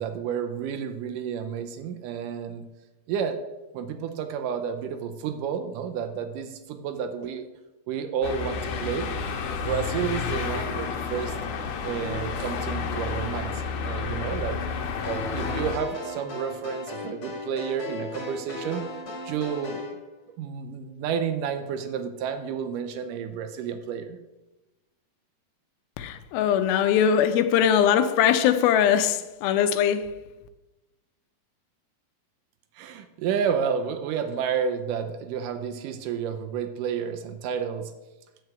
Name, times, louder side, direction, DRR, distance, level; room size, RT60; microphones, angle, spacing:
voice 1, 0.0-2.6 3.1-3.4 3.7-7.5 7.9-9.1 9.5-11.3 11.8-14.6 15.1-18.9 19.3-19.8 20.4-24.2 32.8-37.9, right 7 dB, 80° right, 2.1 m, -30 dB
sound 1, 8.2-15.7, left 5 dB, 70° left, 2.4 m, -31 dB
sound 2, 15.0-20.0, left 2 dB, 45° left, 2.5 m, -37 dB
voice 2, 26.0-30.2, left 9 dB, 90° left, 2.5 m, -21 dB
9.2 x 4.8 x 7.8 m
omnidirectional pair, 4.2 m